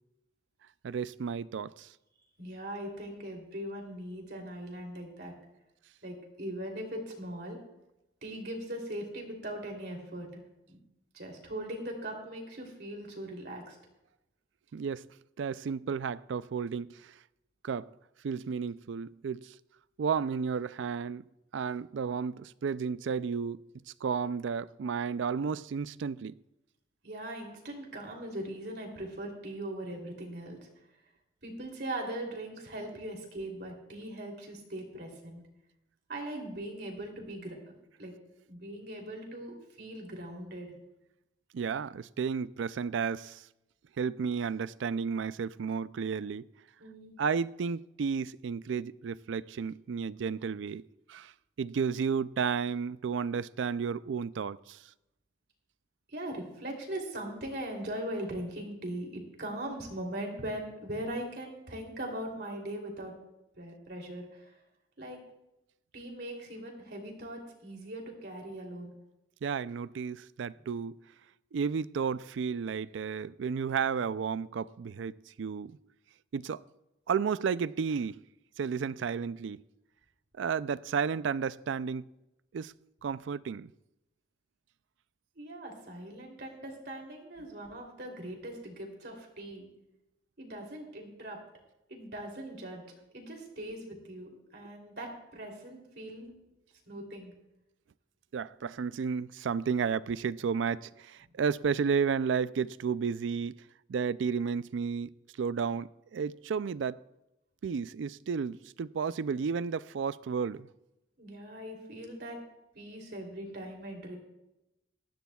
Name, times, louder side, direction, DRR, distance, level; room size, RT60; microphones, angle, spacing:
voice 1, 0.8-1.9 14.7-15.1 15.4-17.1 17.6-17.9 18.2-19.5 20.0-21.2 21.5-23.6 24.0-26.3 41.5-43.4 44.0-46.5 47.2-50.8 51.1-51.3 51.6-54.8 69.4-71.0 71.5-75.8 76.3-76.6 77.1-78.2 78.6-79.6 80.4-82.1 82.5-82.7 83.0-83.7 98.3-103.6 103.9-107.0 107.6-110.7, right 6 dB, 75° right, 0.4 m, -32 dB
voice 2, 2.4-5.3 6.0-7.6 8.2-10.4 10.7-10.8 11.1-13.8 27.0-30.6 31.4-35.4 36.1-37.6 38.0-38.1 38.5-40.7 46.8-47.1 56.1-63.1 63.6-64.6 65.0-65.2 65.9-68.9 85.4-89.7 90.4-91.4 91.9-92.8 93.1-96.3 96.9-97.3 111.2-112.4 112.7-114.2, right 1 dB, 55° right, 3.1 m, -40 dB
19.0 x 14.5 x 2.3 m
head